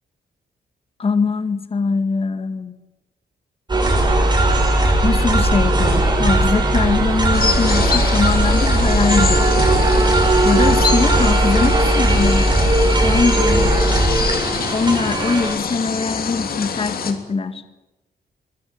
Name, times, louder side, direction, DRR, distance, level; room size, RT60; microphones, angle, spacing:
voice 1, 1.0-2.7 5.0-9.7 10.4-12.7 13.0-13.7 14.7-17.6, left 4 dB, 35° left, 10 dB, 2.0 m, -22 dB
sound 1, 3.7-15.5, right 1 dB, 25° right, 6.4 m, -17 dB
sound 2, 7.3-17.1, left 6 dB, 60° left, 3.3 m, -26 dB
23.0 x 22.0 x 8.8 m, 1.0 s
wide cardioid pair, 140°, 17 cm